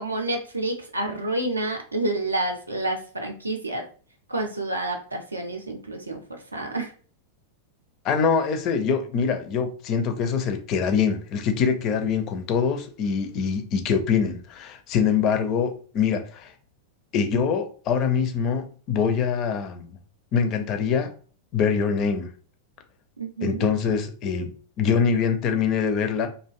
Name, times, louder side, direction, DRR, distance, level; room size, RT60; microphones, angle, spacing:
voice 1, 0.0-3.9 4.3-6.9 23.2-23.7, right 2 dB, 80° right, 0.5 m, -29 dB
voice 2, 8.0-16.5 17.1-19.9 20.3-21.1 21.5-22.3 23.4-26.3, left 6 dB, 35° left, 0.4 m, -24 dB
2.4 x 2.1 x 2.4 m
figure-of-eight pair, 90°, 0 cm